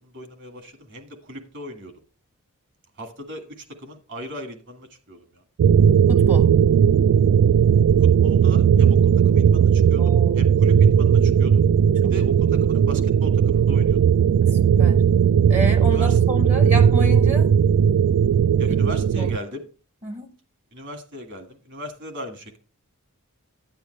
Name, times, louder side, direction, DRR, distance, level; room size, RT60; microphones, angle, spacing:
voice 1, 0.0-1.9 3.0-5.4 8.0-11.6 12.1-14.0 15.9-16.2 18.6-19.6 20.7-22.6, equal, 55° right, 1.7 m, -38 dB
sound 1, 5.6-19.4, right 8 dB, 85° right, 0.3 m, -17 dB
voice 2, 6.1-6.5 10.0-10.4 12.0-12.1 14.4-15.0 15.5-17.5 18.7-19.3 20.0-20.3, right 1 dB, 30° right, 0.8 m, -30 dB
10.0 x 9.5 x 3.3 m
head